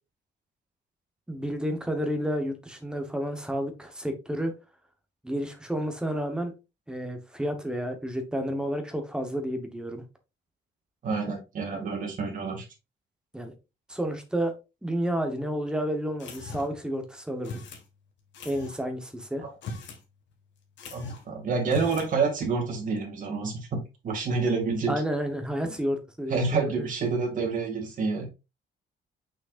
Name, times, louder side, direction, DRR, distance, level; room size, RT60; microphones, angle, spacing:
voice 1, 1.3-4.5 5.2-6.5 6.9-10.0 11.2-11.3 11.7-11.8 13.3-13.5 13.9-14.5 14.8-17.6 18.4-19.4 24.9-26.9, equal, 5° right, 5 dB, 1.0 m, -31 dB
voice 2, 11.0-12.6 19.4-19.5 20.9-23.8 24.0-24.9 26.3-28.3, right 4 dB, 40° right, 1 dB, 2.4 m, -28 dB
sound 1, 16.2-16.8 17.4-17.8 18.3-18.8 19.5-20.0 20.3-20.4 20.8-21.3 21.6-22.1, left 3 dB, 70° left, 1.8 m, -39 dB
6.2 x 6.2 x 2.5 m, 0.28 s
cardioid pair, 170°, 20 cm